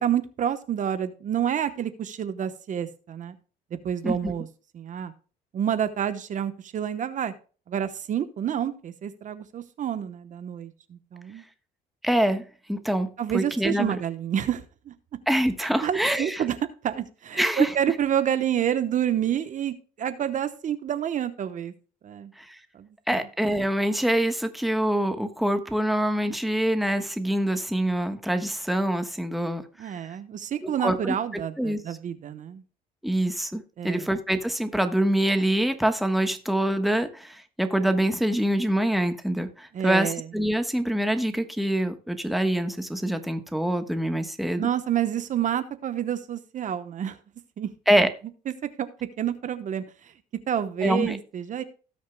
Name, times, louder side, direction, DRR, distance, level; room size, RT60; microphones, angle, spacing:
voice 1, 0.0-3.3 3.8-4.5 4.7-5.1 5.5-7.3 7.7-11.4 13.2-14.9 15.6-16.6 16.8-21.7 22.0-22.3 22.7-23.2 29.8-32.6 33.8-34.1 39.7-40.2 44.6-47.2 47.6-47.7 48.5-48.9 49.2-49.8 50.5-51.6, right 9 dB, 50° right, 11 dB, 1.0 m, -28 dB
voice 2, 12.0-14.0 15.3-16.4 17.3-17.7 22.4-22.6 23.1-29.9 30.6-31.1 31.6-32.0 33.0-44.7 47.9-48.1 50.8-51.2, right 1 dB, ahead, 7 dB, 1.2 m, -25 dB
17.5 x 6.5 x 2.2 m, 0.38 s
cardioid pair, 110°, 17 cm